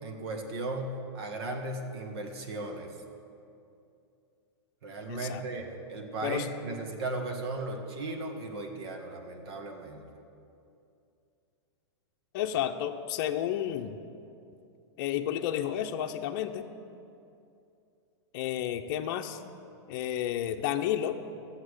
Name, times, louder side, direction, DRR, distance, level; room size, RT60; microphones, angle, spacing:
voice 1, 0.0-2.9 4.8-10.1, right 2 dB, 60° right, 3 dB, 1.5 m, -36 dB
voice 2, 5.1-5.4 6.2-6.5 12.3-14.0 15.0-16.7 18.3-19.4 19.9-21.2, left 11 dB, 45° left, 5 dB, 0.7 m, -31 dB
13.0 x 8.0 x 6.6 m, 2.6 s
supercardioid pair, 150°, 15 cm